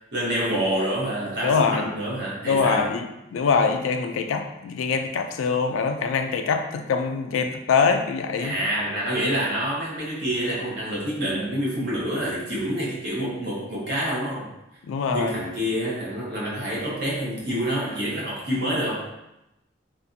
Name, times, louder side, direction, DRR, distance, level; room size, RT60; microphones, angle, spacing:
voice 1, 0.1-2.9 8.4-14.5 15.1-19.1, equal, 55° right, -6 dB, 0.9 m, -27 dB
voice 2, 1.4-1.9 2.5-8.5 14.9-15.4, left 5 dB, 85° left, 7 dB, 0.3 m, -24 dB
2.5 x 2.4 x 2.6 m, 0.90 s
head